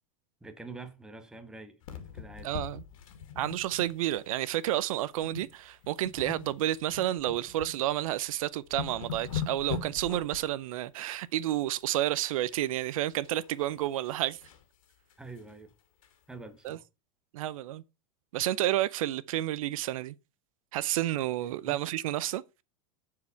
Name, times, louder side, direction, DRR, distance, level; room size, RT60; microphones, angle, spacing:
voice 1, 0.4-2.6 15.2-15.7 16.3-16.8 21.6-21.9, right 3 dB, 5° right, 1.1 m, -46 dB
sound 1, 1.8-4.2 4.5-4.7 5.2-5.5 5.8-7.7 8.2-8.3 8.6-10.5 12.3-12.8 13.2-14.6 15.1-15.2 15.5-15.6 16.0-16.1, left 8 dB, 80° left, 2.2 m, -40 dB
voice 2, 2.4-2.8 3.4-14.4 16.6-16.8 17.3-17.8 18.3-20.1 20.7-22.4, right 14 dB, 80° right, 0.6 m, -30 dB
10.5 x 4.9 x 5.6 m
supercardioid pair, 155°, 17 cm